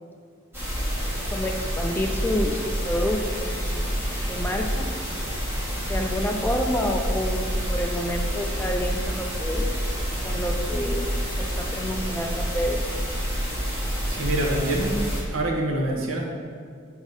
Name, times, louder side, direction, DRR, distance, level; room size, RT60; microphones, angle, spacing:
sound 1, 0.5-15.2, equal, 10° right, 1.7 m, -28 dB
voice 1, 1.3-4.0 4.3-4.9 5.9-9.7 10.2-11.1 11.4-12.8, left 1 dB, 10° left, 3 dB, 0.3 m, -29 dB
voice 2, 14.1-15.0 15.3-16.3, right 1 dB, 80° right, 0 dB, 1.0 m, -26 dB
6.0 x 3.7 x 5.3 m, 2.1 s
head